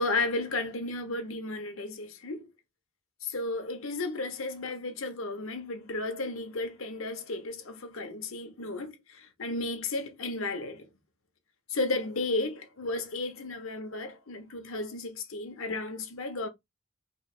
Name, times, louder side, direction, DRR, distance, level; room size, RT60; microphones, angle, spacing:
voice 1, 0.0-2.5 3.2-10.9 11.7-16.5, left 2 dB, 75° left, 1.0 m, -33 dB
4.8 x 3.2 x 2.4 m
head